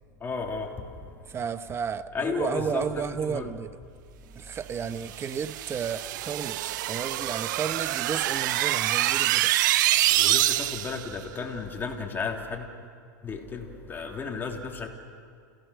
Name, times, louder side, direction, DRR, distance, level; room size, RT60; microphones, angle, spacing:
voice 1, 0.2-0.7 2.1-3.5 10.2-12.7 13.2-14.9, left 5 dB, 20° left, 1 dB, 3.1 m, -33 dB
voice 2, 1.3-3.7 4.3-9.5, right 7 dB, 25° right, 12 dB, 1.0 m, -32 dB
sound 1, 5.1-11.0, right 15 dB, 70° right, 0.7 m, -26 dB
29.5 x 16.5 x 6.4 m, 2.2 s
hypercardioid pair, 115°, 10 cm